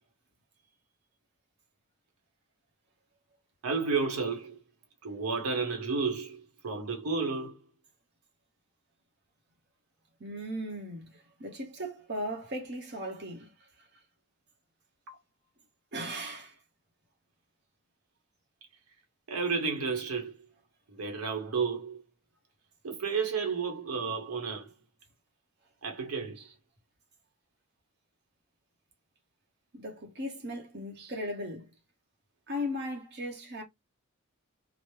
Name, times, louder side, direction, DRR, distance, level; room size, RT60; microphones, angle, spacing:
voice 1, 3.6-4.6 5.0-7.6 15.1-15.2 19.3-20.4 21.0-22.0 22.8-24.7 25.8-26.4, right 4 dB, 85° right, 0.8 m, -32 dB
voice 2, 10.2-11.1 11.4-13.5 15.9-16.5 26.4-26.5 29.8-31.7 32.5-33.6, equal, 50° right, 1.0 m, -37 dB
3.0 x 2.0 x 3.0 m
head